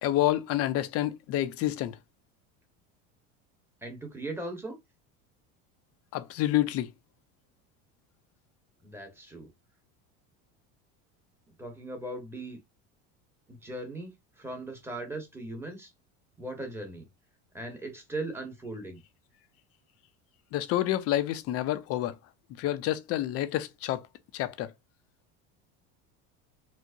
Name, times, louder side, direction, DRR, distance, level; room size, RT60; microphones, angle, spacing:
voice 1, 0.0-2.0 6.1-6.9 20.5-22.2 22.6-24.1 24.3-24.7, left 13 dB, 45° left, 0.5 m, -28 dB
voice 2, 3.8-4.8 8.8-9.5 11.6-12.6 13.5-15.9 16.4-17.1 17.5-19.0, right 2 dB, 5° right, 1.0 m, -38 dB
4.6 x 2.1 x 2.5 m
cardioid pair, 135°, 34 cm